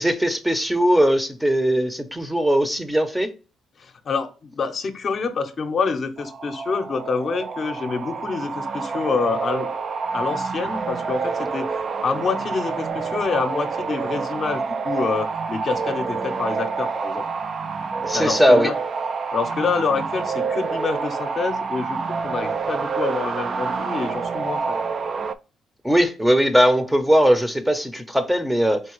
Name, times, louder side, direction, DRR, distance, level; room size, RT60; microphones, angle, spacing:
voice 1, 0.0-3.3 18.0-18.7 25.8-28.8, equal, 5° right, 0.6 m, -19 dB
voice 2, 3.8-9.7 10.1-11.7 12.0-17.2 18.1-18.8 19.3-24.8, left 5 dB, 50° left, 0.6 m, -27 dB
sound 1, 6.2-25.3, right 5 dB, 50° right, 0.3 m, -27 dB
4.6 x 2.8 x 3.0 m
cardioid pair, 90°, 0 cm